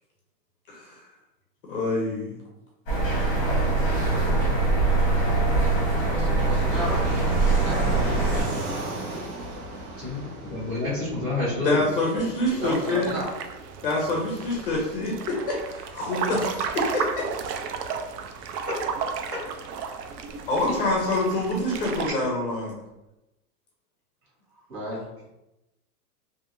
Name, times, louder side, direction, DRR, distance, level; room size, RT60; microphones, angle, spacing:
voice 1, 0.7-1.0 1.7-2.4 11.6-13.1 13.8-17.3 20.5-22.7, left 2 dB, 40° left, -2 dB, 0.5 m, -26 dB
sound 1, 2.9-8.4, right 3 dB, 25° left, 0.9 m, -23 dB
Fixed-wing aircraft airplane, 3.9-22.2, right 2 dB, 70° right, 1.0 m, -39 dB
voice 2, 6.0-7.1 7.4-8.3 12.0-13.3 24.5-25.1, equal, 50° right, -6 dB, 1.4 m, -34 dB
voice 3, 10.5-11.8 19.3-19.4, left 2 dB, 10° right, -11 dB, 0.7 m, -28 dB
sound 2, 12.4-22.1, right 6 dB, 90° right, 0.6 m, -34 dB
2.8 x 2.6 x 2.5 m, 0.94 s
supercardioid pair, 170°, 47 cm